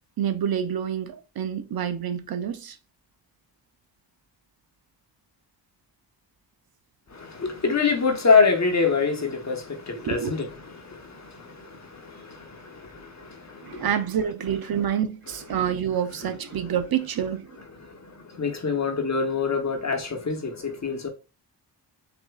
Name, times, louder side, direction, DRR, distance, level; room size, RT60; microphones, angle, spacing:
voice 1, 0.2-2.8 10.0-10.3 13.6-17.5, right 8 dB, 55° right, 0.5 m, -27 dB
voice 2, 7.1-13.9 17.7-21.1, left 5 dB, 40° left, 1.0 m, -26 dB
6.7 x 2.5 x 2.3 m
cardioid pair, 75°, 43 cm